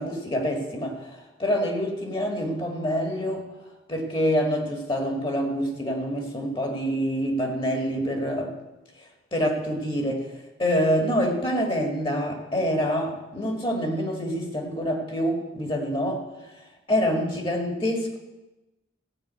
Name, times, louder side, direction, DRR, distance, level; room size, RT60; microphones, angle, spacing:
voice 1, 0.0-3.5 3.9-8.5 9.3-10.3 10.6-16.2 16.9-18.2, equal, 25° left, 2 dB, 1.9 m, -26 dB
15.5 x 5.5 x 8.2 m, 1.0 s
head